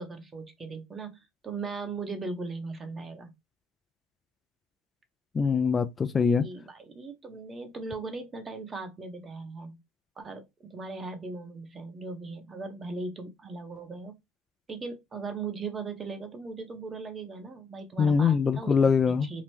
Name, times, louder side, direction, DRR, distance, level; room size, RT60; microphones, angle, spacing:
voice 1, 0.0-3.3 6.4-9.8 10.2-14.1 14.7-18.7 19.1-19.4, right 3 dB, 25° right, 1.0 m, -38 dB
voice 2, 5.4-6.4 18.0-19.3, left 5 dB, 25° left, 0.3 m, -23 dB
2.9 x 2.0 x 3.3 m
hypercardioid pair, 85°, 0 cm